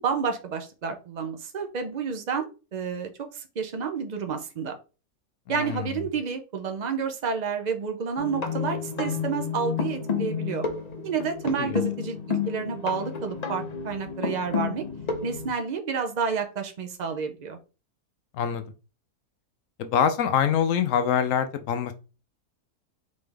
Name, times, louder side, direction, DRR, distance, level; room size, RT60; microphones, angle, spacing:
voice 1, 0.0-2.5 2.7-4.8 5.5-10.7 11.0-14.8 15.2-17.6, right 6 dB, 80° right, 0.3 m, -30 dB
voice 2, 5.5-5.9 11.4-11.8 18.3-18.6 19.8-21.9, left 8 dB, 70° left, 0.8 m, -25 dB
sound 1, 8.2-15.5, left 6 dB, 40° left, 0.6 m, -31 dB
4.2 x 3.5 x 3.3 m
omnidirectional pair, 1.6 m